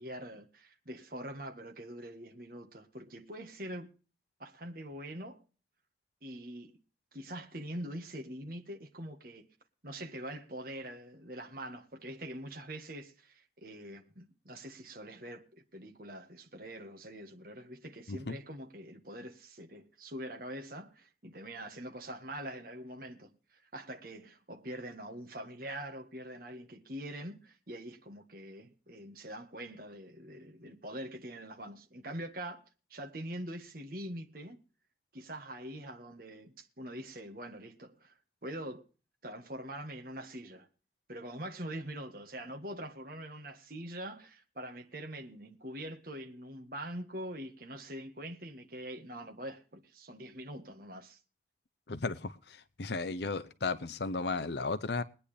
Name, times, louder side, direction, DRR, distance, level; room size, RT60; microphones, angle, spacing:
voice 1, 0.0-3.9 4.4-5.4 6.2-6.8 7.1-9.5 9.8-32.6 32.9-34.6 35.1-38.2 38.4-38.8 39.2-40.7 41.1-51.2, right 1 dB, 50° right, 1.7 m, -44 dB
voice 2, 51.9-55.0, left 3 dB, 70° left, 0.8 m, -35 dB
21.5 x 9.9 x 3.4 m
head